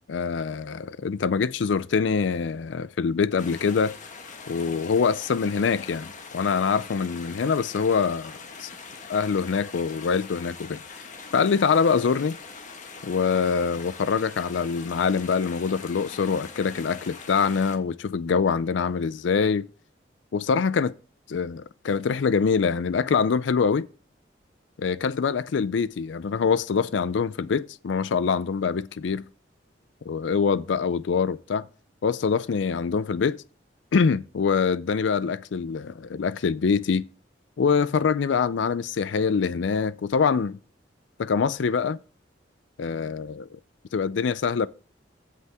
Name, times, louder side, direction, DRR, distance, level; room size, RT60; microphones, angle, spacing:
voice 1, 0.1-3.9 4.5-8.7 9.1-10.8 11.3-12.4 13.0-19.7 20.3-20.9 21.3-23.8 24.8-29.2 30.1-31.6 32.0-33.4 33.9-37.0 37.6-40.6 41.2-42.0 42.8-43.5 43.9-44.7, left 5 dB, 80° left, 0.4 m, -24 dB
sound 1, 3.4-17.8, left 4 dB, 45° left, 1.6 m, -42 dB
15.5 x 5.6 x 3.5 m
head